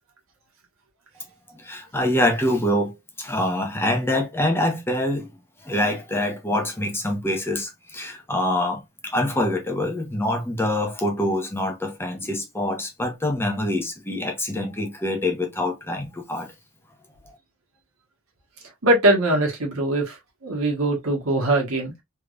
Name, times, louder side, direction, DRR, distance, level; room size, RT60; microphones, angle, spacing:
voice 1, 1.5-5.3 5.6-16.5 17.3-17.4, left 1 dB, 10° left, 0.9 m, -25 dB
voice 2, 18.8-21.9, right 1 dB, 75° right, 1.4 m, -22 dB
3.4 x 3.2 x 2.5 m
head